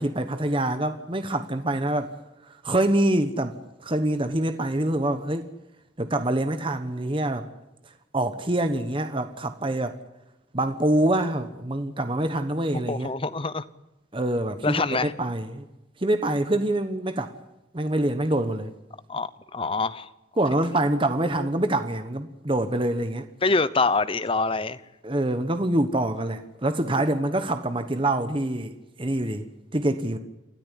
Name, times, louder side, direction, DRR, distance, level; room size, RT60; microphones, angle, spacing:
voice 1, 0.0-2.2 2.5-3.6 3.8-5.5 6.0-7.5 8.1-10.0 10.5-13.1 14.1-15.7 16.0-17.3 17.7-18.7 20.4-23.3 25.0-30.2, right 1 dB, 25° right, 1.1 m, -25 dB
voice 2, 12.9-13.6 14.6-15.1 19.1-20.1 23.4-24.8, left 3 dB, 30° left, 0.8 m, -25 dB
29.0 x 13.0 x 10.0 m
head